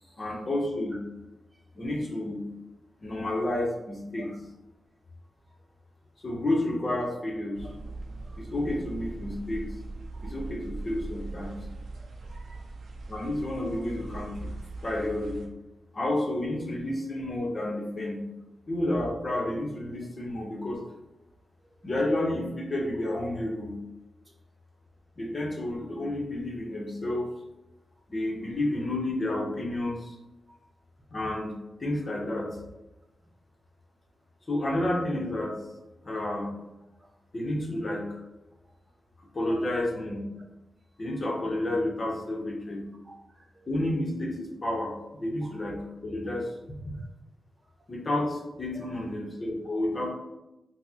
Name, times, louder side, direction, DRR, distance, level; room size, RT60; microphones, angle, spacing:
voice 1, 0.2-1.0 1.7-2.5 3.0-4.3 6.2-7.7 8.4-9.7 10.2-11.6 13.1-14.5 14.8-15.4 15.9-18.2 18.7-20.8 21.8-23.7 25.2-27.3 28.1-30.2 31.1-31.5 31.8-32.5 34.5-35.5 36.0-36.5 37.3-38.0 39.3-40.3 41.0-42.8 43.7-46.8 47.9-50.1, left 1 dB, 30° left, -1 dB, 0.7 m, -30 dB
sound 1, 7.5-15.5, right 3 dB, 85° right, 0.5 m, -40 dB
voice 2, 12.0-12.6 39.4-39.6 43.0-43.7 45.4-45.5 48.8-48.9, equal, 20° right, 1 dB, 0.3 m, -51 dB
4.6 x 2.0 x 2.8 m, 0.95 s
wide cardioid pair, 160°, 0 cm